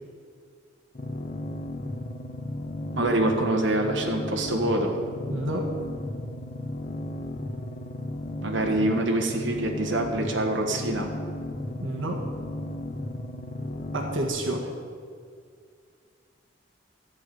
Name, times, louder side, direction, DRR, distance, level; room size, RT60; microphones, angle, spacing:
sound 1, 0.9-14.3, left 1 dB, 40° left, 0.9 m, -35 dB
voice 1, 2.9-5.0 8.4-11.1, right 1 dB, 70° right, 1 dB, 1.5 m, -25 dB
voice 2, 5.3-5.7 11.8-12.2 13.9-14.7, right 1 dB, 90° right, 2 dB, 1.4 m, -29 dB
12.5 x 5.9 x 9.1 m, 2.1 s
head